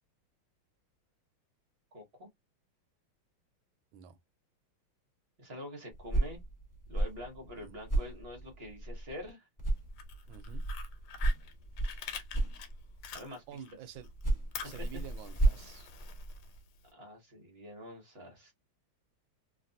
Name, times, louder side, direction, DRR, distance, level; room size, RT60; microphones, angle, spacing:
voice 1, 1.9-2.3 5.4-6.4 6.9-9.5 13.1-13.6 16.9-18.5, left 1 dB, 45° right, 0.8 m, -46 dB
sound 1, 5.9-9.3 9.6-13.1 13.9-16.6, right 2 dB, 10° left, 1.3 m, -33 dB
Fire, 9.8-13.7 14.0-16.8, left 7 dB, 80° left, 1.6 m, -46 dB
voice 2, 10.3-10.6 13.5-14.1 14.6-15.9, right 9 dB, 75° right, 1.3 m, -48 dB
3.3 x 2.5 x 2.6 m
omnidirectional pair, 2.4 m